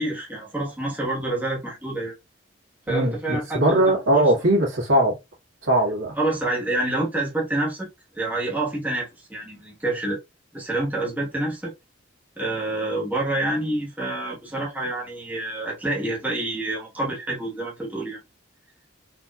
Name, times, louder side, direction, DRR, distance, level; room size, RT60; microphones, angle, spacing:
voice 1, 0.0-2.1 2.9-3.8 4.1-4.2 6.2-7.9 8.1-10.2 10.5-11.7 12.4-18.2, right 2 dB, 10° right, 1.2 m, -27 dB
voice 2, 2.9-5.2 5.6-6.1, right 1 dB, 75° right, 1.7 m, -20 dB
4.2 x 2.8 x 2.3 m
head